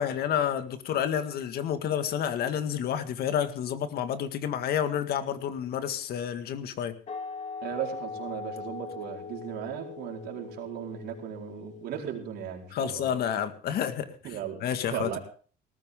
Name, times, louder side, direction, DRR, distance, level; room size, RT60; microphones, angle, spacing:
voice 1, 0.0-7.0 12.7-14.1 14.6-15.2, left 9 dB, 65° left, 9 dB, 1.9 m, -29 dB
sound 1, 7.1-12.5, left 5 dB, 45° left, 2.8 m, -41 dB
voice 2, 7.6-13.1 14.2-14.6 14.9-15.2, right 9 dB, 75° right, 0 dB, 4.6 m, -36 dB
18.5 x 14.0 x 3.8 m, 0.40 s
cardioid pair, 110°, 17 cm